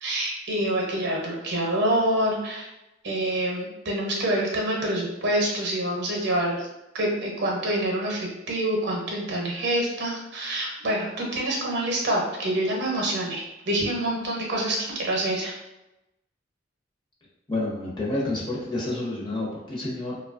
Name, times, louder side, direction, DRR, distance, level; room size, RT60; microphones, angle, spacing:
voice 1, 0.0-2.7 3.0-6.7 6.9-15.6, right 1 dB, 60° right, -1 dB, 0.7 m, -26 dB
voice 2, 17.5-20.1, left 2 dB, 25° left, -7 dB, 0.8 m, -29 dB
2.9 x 2.3 x 2.4 m, 0.95 s
head